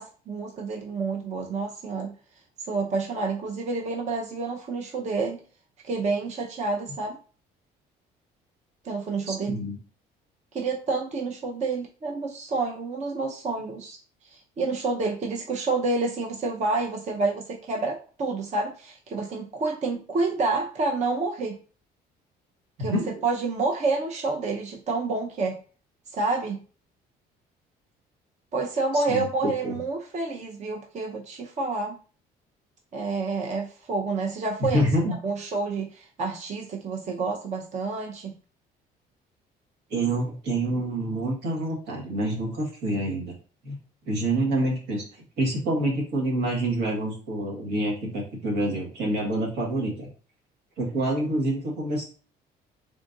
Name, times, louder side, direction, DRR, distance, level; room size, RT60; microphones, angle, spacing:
voice 1, 0.0-2.1 2.7-5.4 5.8-7.2 8.8-9.6 10.5-14.0 14.2-21.6 22.8-25.6 26.1-26.6 28.5-31.9 32.9-34.8 35.2-38.4, right 3 dB, 45° right, 1 dB, 0.7 m, -29 dB
voice 2, 9.3-9.7 22.8-23.2 28.9-29.8 34.7-35.2 39.9-43.3 43.6-43.8 44.1-50.1 50.8-52.0, right 1 dB, 85° right, -1 dB, 1.6 m, -27 dB
3.6 x 2.5 x 3.8 m, 0.38 s
cardioid pair, 110°, 17 cm